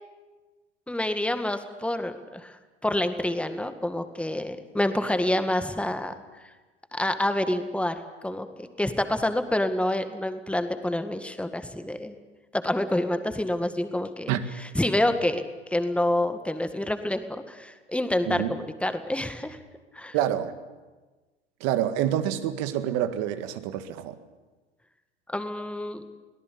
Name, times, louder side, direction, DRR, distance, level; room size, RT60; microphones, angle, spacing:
voice 1, 0.9-2.6 2.8-6.1 6.9-8.0 8.2-12.1 12.5-14.3 14.6-15.4 15.7-19.6 19.9-20.2 25.3-26.0, left 1 dB, 5° left, 9 dB, 1.9 m, -27 dB
voice 2, 20.1-20.5 21.6-24.2, right 11 dB, 50° right, 10 dB, 1.9 m, -27 dB
23.5 x 18.0 x 8.6 m, 1.2 s
figure-of-eight pair, 85°, 34 cm